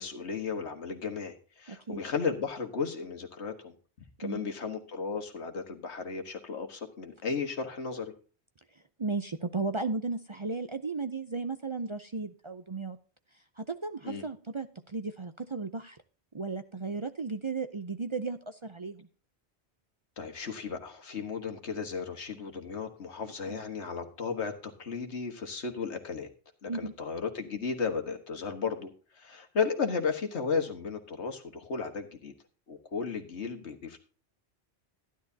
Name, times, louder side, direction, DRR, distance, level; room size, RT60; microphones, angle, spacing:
voice 1, 0.0-3.7 4.2-8.1 14.0-14.2 20.2-26.3 26.6-32.3 32.7-34.0, left 5 dB, 80° left, 5 dB, 1.8 m, -34 dB
voice 2, 1.7-2.0 4.2-4.4 9.0-13.0 13.6-16.0 16.3-19.1 23.5-23.6 26.7-26.9, right 3 dB, 35° right, 9 dB, 0.6 m, -35 dB
13.0 x 11.0 x 2.8 m, 0.38 s
omnidirectional pair, 1.1 m